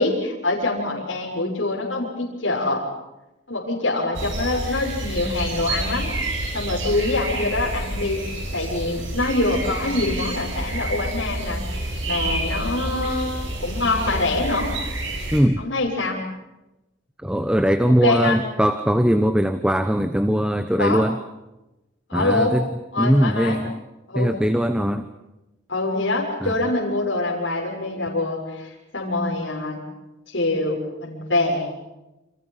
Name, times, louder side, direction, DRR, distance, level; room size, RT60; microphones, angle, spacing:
voice 1, 0.0-2.8 3.5-6.1 6.5-8.2 8.5-11.6 12.0-13.3 13.6-14.7 15.6-16.2 18.0-18.4 20.8-21.0 22.1-22.5 22.9-23.6 24.1-24.3 25.7-29.8 30.3-31.7, left 2 dB, 65° left, -4 dB, 6.5 m, -24 dB
sound 1, 4.1-15.4, right 1 dB, 70° right, 7.4 m, -29 dB
voice 2, 15.3-15.6 17.2-21.2 22.1-22.7 23.0-23.8 24.1-25.1 26.4-26.5, equal, 5° right, 9 dB, 1.0 m, -20 dB
30.0 x 27.5 x 5.8 m, 0.98 s
head